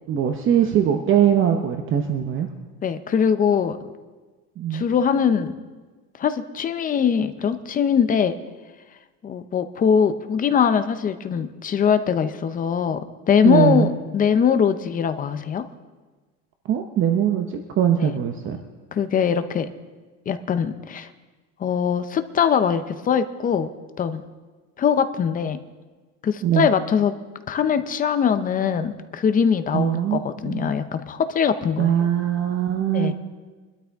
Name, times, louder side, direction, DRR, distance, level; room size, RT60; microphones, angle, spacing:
voice 1, 0.1-2.5 4.6-4.8 13.4-13.9 16.7-18.6 26.4-26.7 29.7-30.7 31.8-33.1, right 9 dB, 35° right, 5 dB, 0.8 m, -21 dB
voice 2, 2.8-3.8 4.7-5.5 6.2-8.3 9.2-15.6 18.0-18.1 18.9-19.7 20.3-21.1 21.6-23.7 24.0-24.2 24.8-25.6 26.2-27.1 27.5-32.1 32.9-33.1, left 7 dB, 25° left, 11 dB, 0.5 m, -22 dB
24.0 x 12.5 x 3.5 m, 1.3 s
cardioid pair, 160°, 37 cm